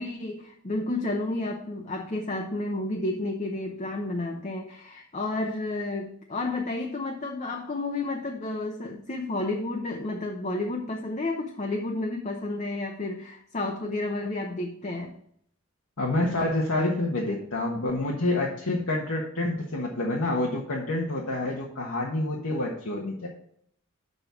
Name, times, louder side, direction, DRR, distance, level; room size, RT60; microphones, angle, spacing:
voice 1, 0.0-15.2, left 2 dB, 35° left, 2 dB, 0.8 m, -31 dB
voice 2, 16.0-23.3, left 2 dB, 75° left, -2 dB, 1.4 m, -28 dB
7.1 x 5.4 x 6.9 m, 0.68 s
head